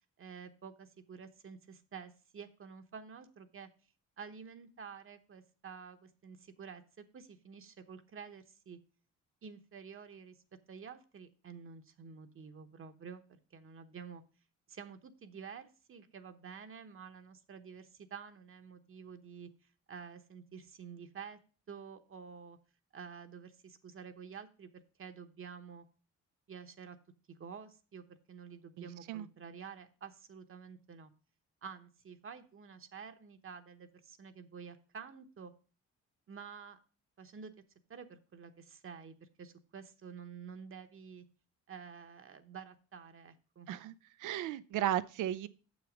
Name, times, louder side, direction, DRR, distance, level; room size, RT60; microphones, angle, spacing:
voice 1, 0.2-3.7 4.2-8.8 9.4-10.4 10.7-14.2 14.7-19.5 19.9-21.4 21.7-22.6 22.9-25.9 26.5-27.0 27.3-31.1 31.6-35.5 36.3-36.8 37.2-37.5 37.9-41.2 41.7-43.7, right 6 dB, 45° right, 7 dB, 1.0 m, -50 dB
voice 2, 28.8-29.3 43.7-43.9 44.2-45.5, right 12 dB, 85° right, 16 dB, 0.6 m, -35 dB
7.0 x 6.3 x 5.0 m, 0.36 s
cardioid pair, 90°, 30 cm